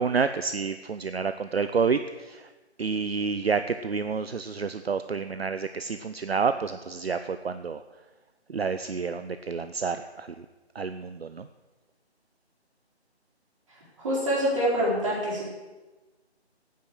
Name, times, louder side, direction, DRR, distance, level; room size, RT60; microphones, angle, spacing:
voice 1, 0.0-2.5 2.8-7.8 8.5-10.5 10.7-11.5, right 5 dB, 65° right, 10 dB, 0.7 m, -29 dB
voice 2, 13.7-15.5, equal, 30° right, -5 dB, 4.4 m, -26 dB
12.0 x 9.4 x 8.0 m, 1.2 s
figure-of-eight pair, 170°, 33 cm